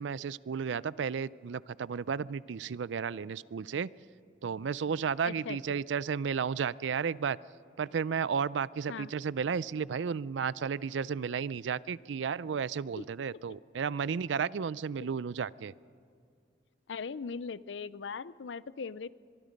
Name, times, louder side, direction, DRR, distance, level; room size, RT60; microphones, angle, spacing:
voice 1, 0.0-3.9 4.4-7.4 7.8-15.7, right 6 dB, 90° right, 20 dB, 0.4 m, -33 dB
voice 2, 5.3-5.6 8.9-9.1 13.0-13.1 16.9-19.1, left 5 dB, 85° left, 18 dB, 0.5 m, -39 dB
23.5 x 23.0 x 5.3 m, 2.3 s
head